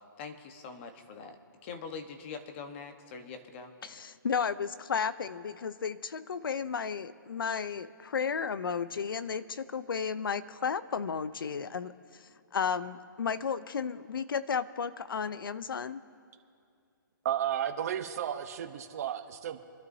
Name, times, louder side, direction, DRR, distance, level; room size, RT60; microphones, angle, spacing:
voice 1, 0.2-3.7, left 5 dB, 35° left, 6 dB, 1.2 m, -43 dB
voice 2, 3.8-16.0, left 6 dB, 85° left, 15 dB, 0.6 m, -33 dB
voice 3, 17.2-19.6, right 10 dB, 45° right, 5 dB, 0.9 m, -33 dB
26.0 x 12.0 x 2.7 m, 2.3 s
hypercardioid pair, 155°, 11 cm